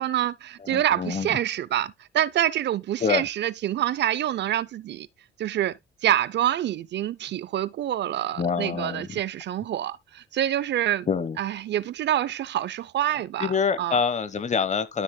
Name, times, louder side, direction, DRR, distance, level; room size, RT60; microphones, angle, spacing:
voice 1, 0.0-5.1 5.4-11.1 11.4-13.5 13.8-14.0, right 12 dB, 60° right, 0.5 m, -26 dB
voice 2, 0.6-1.3 3.0-3.2 8.4-9.1 11.1-11.4 13.4-15.0, left 5 dB, 35° left, 1.1 m, -26 dB
12.5 x 6.1 x 2.2 m
cardioid pair, 90°, 20 cm